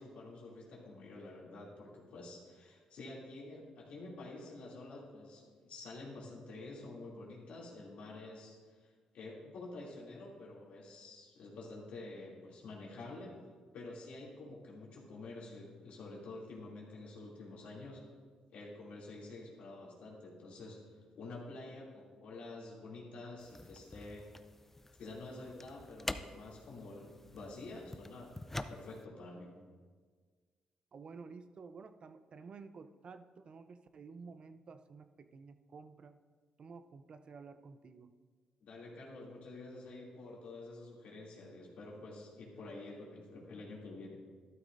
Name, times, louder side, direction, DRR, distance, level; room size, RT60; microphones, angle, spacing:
voice 1, 0.0-13.4 13.7-18.2 18.5-20.8 21.1-24.3 25.0-28.3 28.7-29.5 38.6-44.2, left 2 dB, 75° left, -4 dB, 2.7 m, -49 dB
sound 1, 23.4-29.0, left 2 dB, 15° left, 0.5 m, -46 dB
voice 2, 30.9-36.2 36.6-38.1, right 4 dB, 50° right, 10 dB, 0.6 m, -52 dB
12.5 x 12.0 x 2.6 m, 1.5 s
cardioid pair, 75°, 2 cm